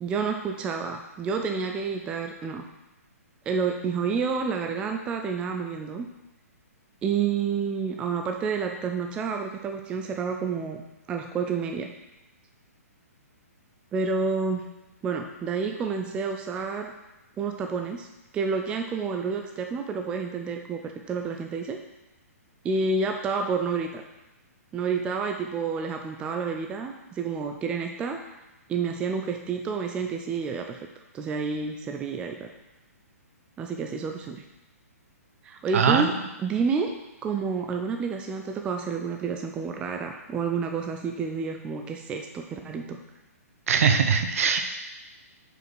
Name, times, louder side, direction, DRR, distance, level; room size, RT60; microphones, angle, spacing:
voice 1, 0.0-2.6 3.5-6.1 7.0-10.8 11.1-11.9 13.9-14.7 15.0-16.9 17.4-18.1 18.3-21.8 22.6-24.0 24.7-28.3 28.7-30.9 31.1-32.5 33.6-34.4 35.4-36.1 36.4-36.9 37.2-43.0, right 5 dB, 10° right, 4 dB, 0.3 m, -29 dB
voice 2, 35.7-36.1 43.7-44.6, right 6 dB, 60° right, 7 dB, 0.7 m, -21 dB
5.0 x 4.8 x 4.7 m, 1.0 s
hypercardioid pair, 145°, 9 cm